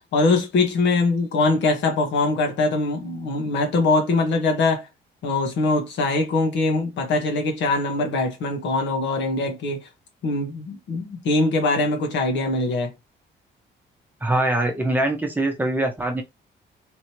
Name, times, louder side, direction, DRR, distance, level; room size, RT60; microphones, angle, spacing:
voice 1, 0.1-4.9 5.2-9.9 10.2-12.9, left 3 dB, 75° left, 1.3 m, -22 dB
voice 2, 14.2-16.2, right 1 dB, 10° right, 0.8 m, -23 dB
3.7 x 3.0 x 2.9 m
cardioid pair, 165°, 19 cm